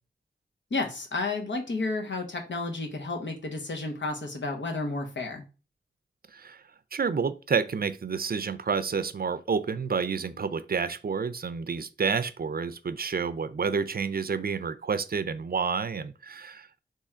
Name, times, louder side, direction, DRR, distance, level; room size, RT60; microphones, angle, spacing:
voice 1, 0.7-5.4, left 3 dB, 80° left, 0.9 m, -31 dB
voice 2, 6.9-16.8, right 5 dB, 55° right, 0.4 m, -29 dB
3.5 x 3.0 x 4.4 m
wide cardioid pair, 50°, 19 cm